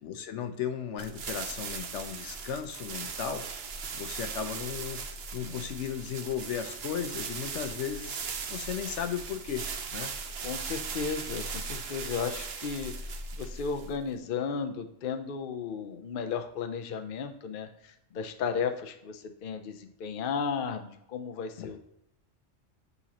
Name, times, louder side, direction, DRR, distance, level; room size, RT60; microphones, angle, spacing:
voice 1, 0.0-3.5 3.9-8.2 8.5-9.6 9.9-10.1 21.6-21.8, left 8 dB, 75° left, 7 dB, 1.0 m, -35 dB
sound 1, 1.0-14.1, right 5 dB, 60° right, 0.9 m, -38 dB
voice 2, 10.4-21.8, left 6 dB, 55° left, 6 dB, 0.7 m, -34 dB
8.4 x 4.0 x 2.8 m, 0.81 s
omnidirectional pair, 1.3 m